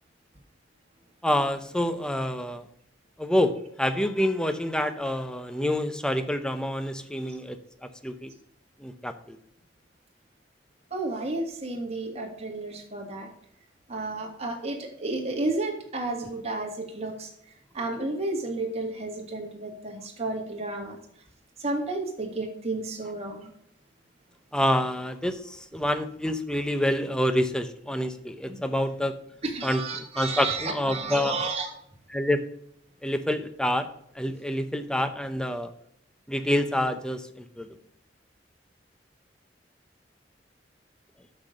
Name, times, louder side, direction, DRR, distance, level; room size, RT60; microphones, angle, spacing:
voice 1, 1.2-2.6 3.2-3.5 3.8-7.6 8.0-8.3 8.8-9.4 24.5-29.2 29.6-31.4 32.1-32.4 33.0-33.9 34.2-35.7 36.3-37.7, left 1 dB, 5° left, 9 dB, 0.7 m, -27 dB
voice 2, 10.9-13.3 13.9-17.3 17.7-21.0 21.6-23.5 28.5-28.6 29.4-31.7, right 2 dB, 35° right, 2 dB, 1.9 m, -32 dB
6.7 x 6.1 x 6.3 m, 0.71 s
head